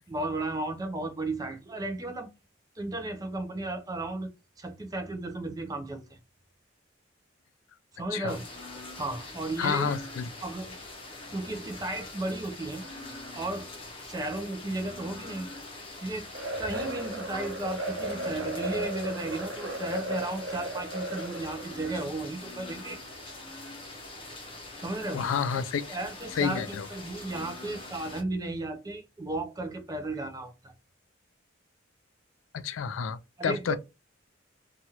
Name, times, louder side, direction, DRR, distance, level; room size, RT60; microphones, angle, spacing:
voice 1, 0.1-2.3 2.8-4.3 4.6-6.2 7.9-8.4 8.9-10.0 10.4-10.7 11.3-12.8 13.3-13.7 14.0-15.5 16.0-16.3 16.6-23.0 24.8-25.2 25.6-30.8 33.4-33.8, right 2 dB, 20° right, 0.4 m, -34 dB
sound 1, 8.3-28.2, left 2 dB, 30° left, 0.7 m, -43 dB
voice 2, 9.6-10.3 25.1-26.0 26.4-26.9 32.5-33.8, left 6 dB, 80° left, 0.3 m, -29 dB
sound 2, 16.3-21.8, right 1 dB, 65° right, 0.8 m, -35 dB
3.0 x 2.3 x 2.7 m
head